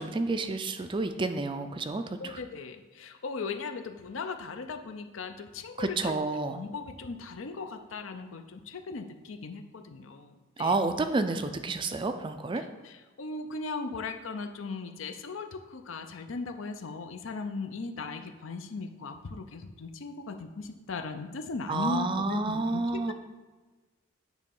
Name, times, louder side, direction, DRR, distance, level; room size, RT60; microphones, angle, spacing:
voice 1, 0.0-2.4 5.8-6.6 10.6-12.6 21.7-23.1, right 3 dB, 25° right, 8 dB, 0.3 m, -30 dB
voice 2, 2.2-6.2 6.5-10.7 12.5-23.1, left 4 dB, 70° left, 7 dB, 0.6 m, -38 dB
9.1 x 3.1 x 5.4 m, 1.3 s
head